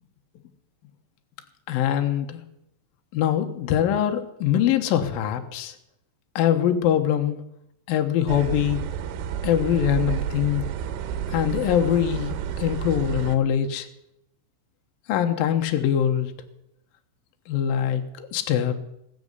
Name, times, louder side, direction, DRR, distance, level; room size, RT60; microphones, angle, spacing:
voice 1, 1.7-2.4 3.1-5.7 6.4-7.4 7.9-8.8 9.4-10.6 11.3-13.9 15.1-16.3 17.5-18.7, left 10 dB, 75° left, 5 dB, 2.1 m, -23 dB
sound 1, 8.3-13.4, right 9 dB, 85° right, 3.4 m, -30 dB
19.0 x 7.5 x 8.1 m, 0.79 s
omnidirectional pair, 5.6 m